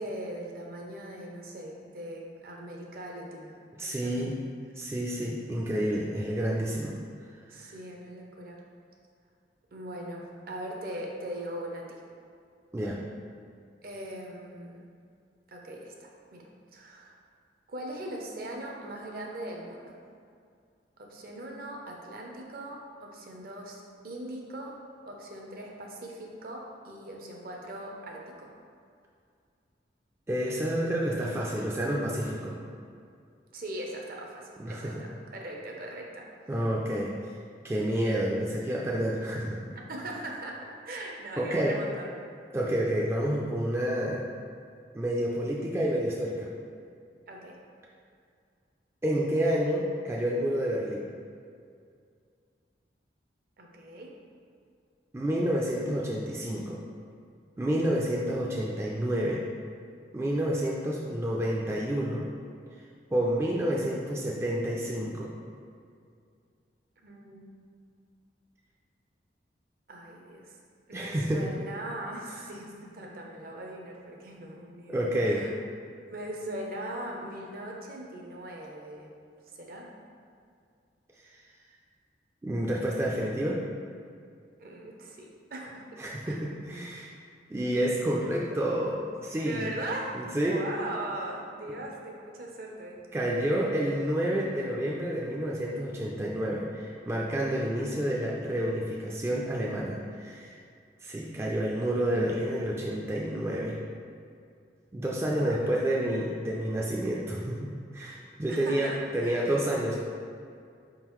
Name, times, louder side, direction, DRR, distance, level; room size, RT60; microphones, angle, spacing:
voice 1, 0.0-4.3 6.7-7.0 7.5-8.6 9.7-12.0 13.8-14.9 15.5-17.1 17.7-20.0 21.0-24.8 25.1-28.5 33.5-36.6 39.9-42.1 47.3-47.6 53.6-54.2 67.0-67.5 69.9-70.5 70.9-75.5 76.1-79.1 79.6-79.9 84.6-86.4 89.4-93.0 93.5-93.7 105.2-105.8 108.5-109.4, right 1 dB, 55° right, 0 dB, 0.6 m, -40 dB
voice 2, 3.8-4.4 4.8-7.0 7.6-7.7 12.7-13.0 30.3-32.6 34.6-35.1 36.5-37.4 37.6-39.7 41.4-41.8 42.5-44.3 44.9-46.5 49.0-51.1 55.1-56.8 57.6-59.4 60.1-62.3 63.1-65.3 70.9-71.5 74.9-75.5 82.4-83.6 86.0-87.1 87.5-89.7 90.1-90.6 93.1-100.5 101.0-103.8 104.9-107.7 107.9-110.0, right 1 dB, 15° right, -4 dB, 0.3 m, -29 dB
4.7 x 3.7 x 3.0 m, 2.3 s
head